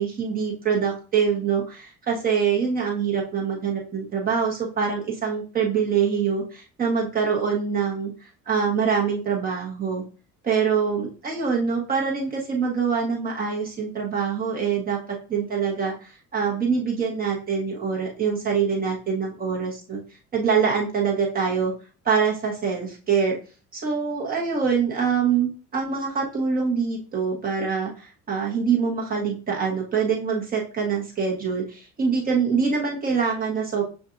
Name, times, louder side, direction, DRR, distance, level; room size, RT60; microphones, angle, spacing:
voice 1, 0.0-10.0 10.4-20.0 20.3-21.7 22.0-23.3 23.7-33.8, right 6 dB, 25° right, -2 dB, 1.0 m, -24 dB
6.9 x 2.5 x 2.5 m, 0.36 s
cardioid pair, 160°, 33 cm